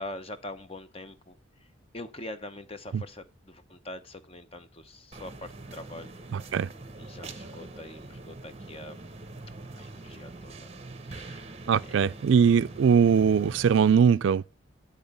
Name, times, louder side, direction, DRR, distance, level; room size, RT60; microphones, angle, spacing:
voice 1, 0.0-1.4 1.9-6.2 7.0-9.1 9.7-10.7 11.0-11.4, left 2 dB, 30° left, 0.7 m, -43 dB
sound 1, 5.1-14.0, right 2 dB, 30° right, 0.8 m, -44 dB
voice 2, 6.3-6.7 11.7-14.5, right 7 dB, 65° right, 0.3 m, -21 dB
10.5 x 3.8 x 5.4 m
head